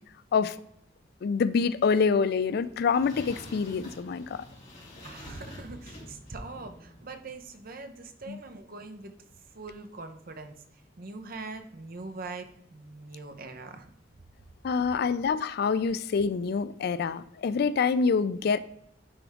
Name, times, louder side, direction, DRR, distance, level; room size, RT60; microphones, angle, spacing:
voice 1, 1.2-4.4 8.3-8.4 14.6-18.6, left 5 dB, 55° left, 0.3 m, -26 dB
sound 1, 2.4-7.3, left 1 dB, 40° left, 2.5 m, -47 dB
voice 2, 5.0-9.1 9.5-10.6 11.0-13.9 15.0-15.2, right 3 dB, 50° right, 0.8 m, -42 dB
9.8 x 3.5 x 3.5 m
head